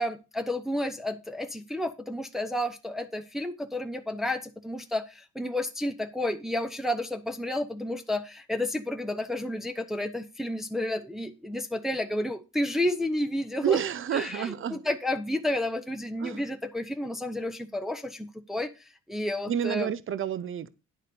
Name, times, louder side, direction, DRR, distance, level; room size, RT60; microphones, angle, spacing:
voice 1, 0.0-13.8 14.1-18.7 19.1-19.9, left 1 dB, ahead, 0.8 m, -31 dB
voice 2, 13.6-14.8 16.2-16.4 19.5-20.7, right 8 dB, 45° right, 0.7 m, -29 dB
10.0 x 4.1 x 6.7 m
cardioid pair, 90°, 30 cm